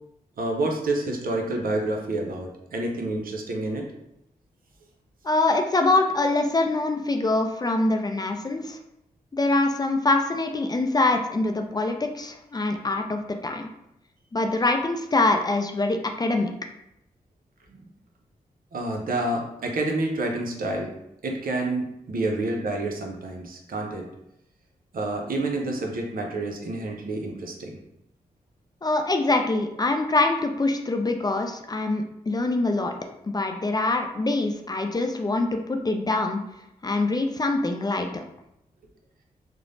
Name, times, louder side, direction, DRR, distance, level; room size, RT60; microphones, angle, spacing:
voice 1, 0.4-3.9 17.7-17.8 18.7-20.9 21.2-24.1 24.9-27.8, right 2 dB, 65° right, 1 dB, 0.6 m, -28 dB
voice 2, 5.2-8.8 9.3-13.7 14.3-16.5 28.8-32.9 33.2-36.4 36.8-38.2, left 2 dB, 25° left, 4 dB, 0.4 m, -24 dB
3.1 x 2.0 x 2.5 m, 0.82 s
supercardioid pair, 40°, 16 cm